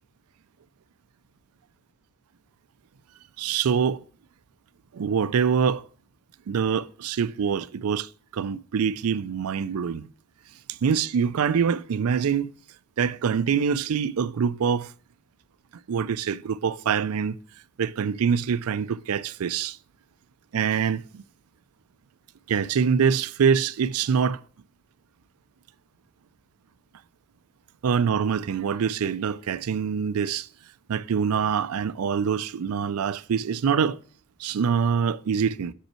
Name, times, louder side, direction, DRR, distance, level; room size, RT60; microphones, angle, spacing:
voice 1, 3.4-4.0 4.9-5.8 6.5-10.1 10.7-12.5 13.0-14.9 15.9-17.4 17.8-19.8 20.5-21.2 22.5-24.4 27.8-30.5 30.9-34.0 34.4-35.7, right 7 dB, 80° right, 0.4 m, -25 dB
7.0 x 5.4 x 4.3 m
head